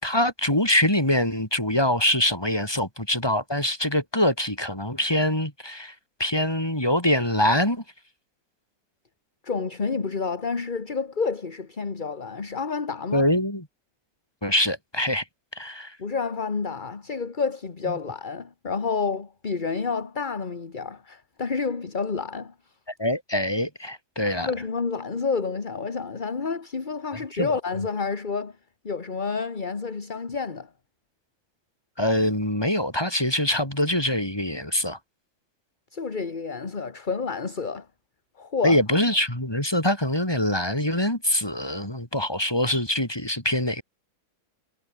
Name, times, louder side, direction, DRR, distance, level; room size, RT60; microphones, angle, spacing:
voice 1, 0.0-5.9 6.2-7.8 13.1-13.7 14.4-15.2 15.5-16.0 23.0-24.5 27.1-27.5 32.0-35.0 38.6-43.8, left 1 dB, 10° left, 5.2 m, -24 dB
voice 2, 9.4-13.3 16.0-22.5 24.3-28.6 28.8-30.7 35.9-37.9 38.4-38.8, left 5 dB, 25° left, 1.5 m, -29 dB
omnidirectional pair, 2.1 m